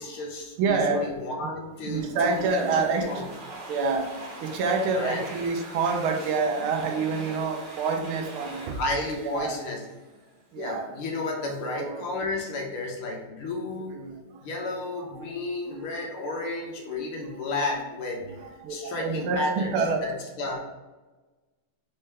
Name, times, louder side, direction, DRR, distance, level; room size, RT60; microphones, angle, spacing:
voice 1, 0.0-2.4 2.7-3.3 4.9-5.3 8.7-9.8 10.6-14.0 14.4-18.4 18.7-19.8 20.0-20.6, left 2 dB, 75° left, 1 dB, 1.7 m, -32 dB
voice 2, 0.6-1.1 1.4-1.5 1.8-3.2 3.7-4.1 4.4-8.8 9.2-9.6 10.5-10.9 11.7-12.1 13.9-14.1 14.7-15.2 15.7-15.8 16.9-17.6 18.4-20.0, right 4 dB, 80° right, 4 dB, 1.5 m, -28 dB
Domestic sounds home sounds, 1.9-10.4, right 2 dB, 55° right, 1.8 m, -43 dB
4.3 x 3.4 x 3.3 m, 1.2 s
omnidirectional pair, 2.4 m